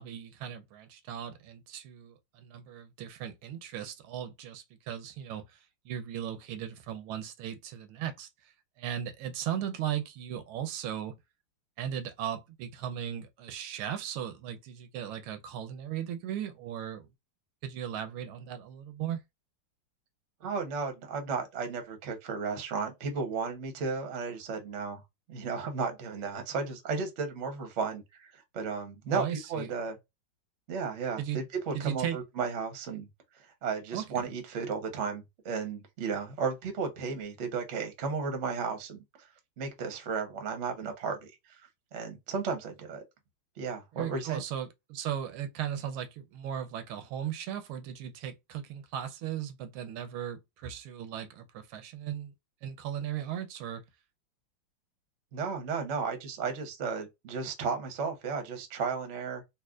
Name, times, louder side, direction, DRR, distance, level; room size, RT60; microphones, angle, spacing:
voice 1, 0.0-5.6 5.8-8.5 8.8-11.2 11.8-17.1 17.6-19.2 29.1-29.7 31.2-31.4 31.7-32.2 33.9-34.0 43.9-52.3 52.6-53.8, right 10 dB, 80° right, 1.4 m, -37 dB
voice 2, 20.4-25.0 25.3-29.9 30.7-33.1 33.4-39.0 39.6-41.2 41.9-43.0 43.6-44.4 55.3-59.5, right 5 dB, 50° right, 0.9 m, -34 dB
4.2 x 2.4 x 2.3 m
omnidirectional pair, 2.4 m